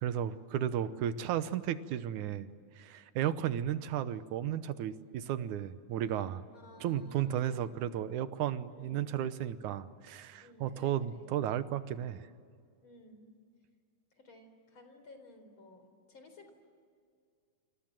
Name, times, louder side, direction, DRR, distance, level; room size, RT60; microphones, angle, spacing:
voice 1, 0.0-2.5 2.8-6.4 6.8-12.2, right 10 dB, 85° right, 13 dB, 2.4 m, -34 dB
voice 2, 6.5-7.8 8.7-9.1 10.4-11.3 12.8-13.2 14.1-16.5, left 1 dB, 40° left, 6 dB, 4.9 m, -56 dB
29.0 x 27.0 x 7.6 m, 2.2 s
omnidirectional pair, 3.4 m